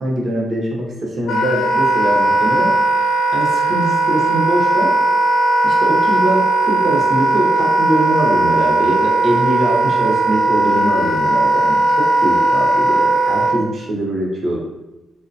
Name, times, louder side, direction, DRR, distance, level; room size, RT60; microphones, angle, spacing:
voice 1, 0.0-2.7 3.3-4.9 5.6-14.8, right 1 dB, 45° right, -2 dB, 0.6 m, -22 dB
Wind instrument woodwind instrument, 1.3-13.6, right 2 dB, 90° left, 0.4 m, -17 dB
3.1 x 2.1 x 2.6 m, 0.96 s
wide cardioid pair, 160°, 0 cm